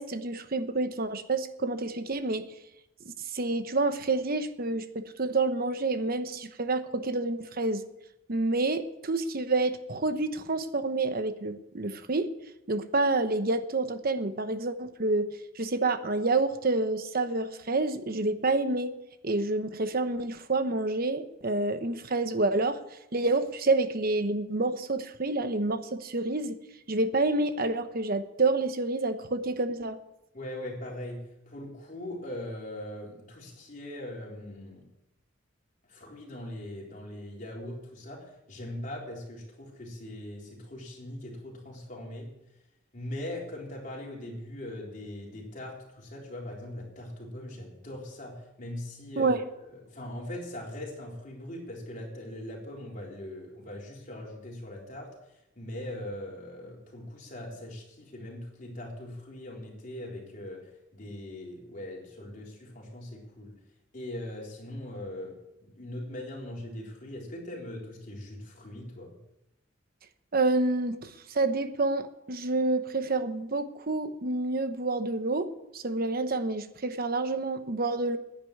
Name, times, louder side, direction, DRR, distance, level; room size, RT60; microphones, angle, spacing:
voice 1, 0.0-2.5 3.0-7.8 8.3-12.3 12.7-15.3 15.5-18.9 19.2-22.8 23.1-26.6 26.9-30.0 49.2-49.4 70.3-78.2, right 2 dB, 50° right, 10 dB, 1.1 m, -28 dB
voice 2, 30.3-34.9 35.9-42.3 42.9-49.3 49.6-63.5 63.9-69.2, left 1 dB, 45° left, -2 dB, 4.0 m, -41 dB
10.5 x 10.0 x 8.6 m, 0.89 s
head